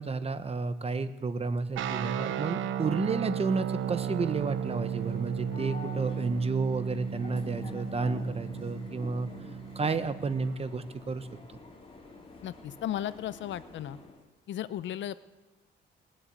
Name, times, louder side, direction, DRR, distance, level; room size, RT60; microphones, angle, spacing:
voice 1, 0.0-9.3 9.7-11.3, right 4 dB, 30° right, 11 dB, 1.1 m, -31 dB
sound 1, 1.8-10.6, right 8 dB, 80° right, 0.9 m, -35 dB
sound 2, 3.5-14.3, left 3 dB, 30° left, 3.5 m, -48 dB
voice 2, 12.4-14.0 14.5-15.2, left 11 dB, 70° left, 15 dB, 0.7 m, -35 dB
19.5 x 7.6 x 8.5 m, 1.2 s
cardioid pair, 90°, 20 cm